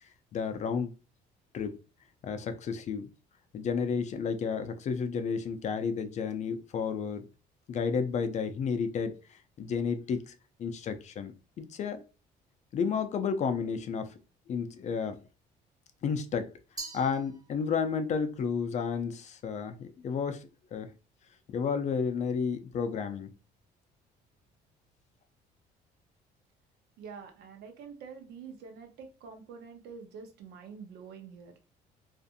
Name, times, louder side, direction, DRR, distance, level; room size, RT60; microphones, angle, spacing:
voice 1, 0.3-0.9 1.5-1.8 2.2-3.1 3.5-7.3 7.7-10.3 10.6-11.3 11.6-12.0 12.7-14.1 14.5-15.2 16.0-16.5 16.9-20.9 21.5-23.3, left 6 dB, 45° left, 0.4 m, -32 dB
Glass, 16.8-18.0, right 2 dB, 20° right, 0.7 m, -44 dB
voice 2, 27.0-31.6, right 6 dB, 75° right, 0.7 m, -47 dB
2.6 x 2.5 x 2.4 m
cardioid pair, 110°, 17 cm